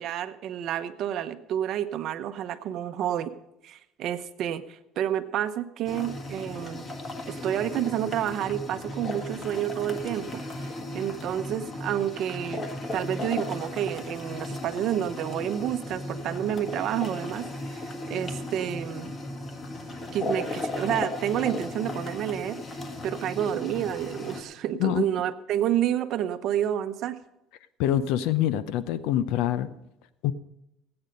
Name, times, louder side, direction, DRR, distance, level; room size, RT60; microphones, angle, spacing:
voice 1, 0.0-3.3 3.6-6.9 7.3-10.4 10.9-12.6 12.9-19.1 20.1-22.6 23.0-27.2, right 11 dB, 55° right, 11 dB, 0.8 m, -29 dB
sound 1, 5.9-24.4, left 2 dB, 25° left, 1.6 m, -36 dB
voice 2, 27.8-29.7 30.2-30.3, left 12 dB, 80° left, 15 dB, 0.7 m, -25 dB
17.5 x 8.8 x 5.3 m, 0.87 s
cardioid pair, 130°, 0 cm